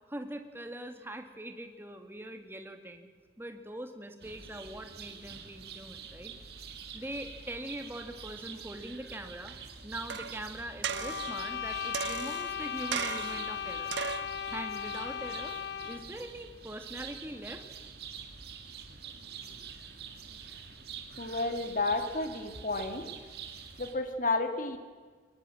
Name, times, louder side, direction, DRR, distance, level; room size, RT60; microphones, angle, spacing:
voice 1, 0.1-3.1 3.4-6.3 6.9-9.6 9.8-14.0 14.5-15.6 15.8-17.7, right 1 dB, 10° right, 6 dB, 1.9 m, -42 dB
sound 1, 4.2-24.0, right 6 dB, 60° right, 2.4 m, -46 dB
sound 2, 10.1-10.4 10.8-11.4 11.9-12.5 12.9-13.5 13.9-14.3 14.9-15.0, right 7 dB, 80° right, 1.0 m, -36 dB
sound 3, 10.9-16.2, left 8 dB, 65° left, 0.6 m, -37 dB
voice 2, 21.2-23.1 23.8-24.8, left 2 dB, 45° left, 7 dB, 2.0 m, -31 dB
22.5 x 20.0 x 7.6 m, 1.5 s
head